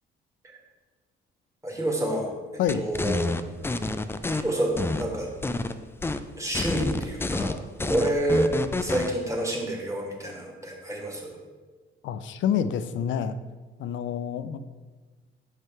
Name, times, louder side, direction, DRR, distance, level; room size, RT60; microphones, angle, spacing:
voice 1, 1.6-2.3 2.8-3.3 4.3-5.3 6.4-8.5 8.8-11.4, right 1 dB, 15° right, 0 dB, 1.5 m, -28 dB
sound 1, 2.7-4.4 4.8-5.7 6.0-6.2 6.5-9.1, left 2 dB, 10° left, 0.3 m, -28 dB
voice 2, 12.0-13.4 13.8-14.6, left 8 dB, 75° left, 13 dB, 0.4 m, -27 dB
5.8 x 5.5 x 3.7 m, 1.4 s
cardioid pair, 90°, 20 cm